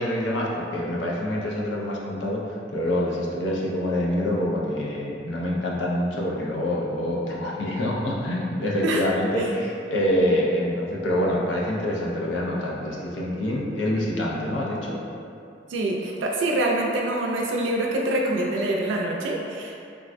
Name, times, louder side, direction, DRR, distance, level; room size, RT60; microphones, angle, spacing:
voice 1, 0.0-15.0, left 1 dB, 75° left, -4 dB, 0.5 m, -26 dB
voice 2, 15.7-19.8, right 1 dB, 80° right, -1 dB, 0.3 m, -25 dB
3.6 x 2.1 x 2.4 m, 2.5 s
head